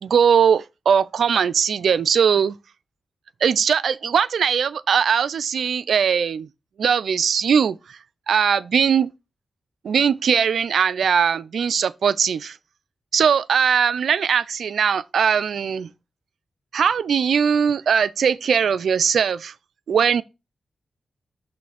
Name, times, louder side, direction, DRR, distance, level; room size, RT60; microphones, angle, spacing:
voice 1, 0.0-2.6 3.4-6.5 6.8-8.0 8.3-9.1 9.8-12.6 13.1-15.9 16.7-19.5 19.9-20.2, right 7 dB, 75° right, 0.3 m, -20 dB
6.1 x 3.1 x 5.7 m
supercardioid pair, 45°, 0 cm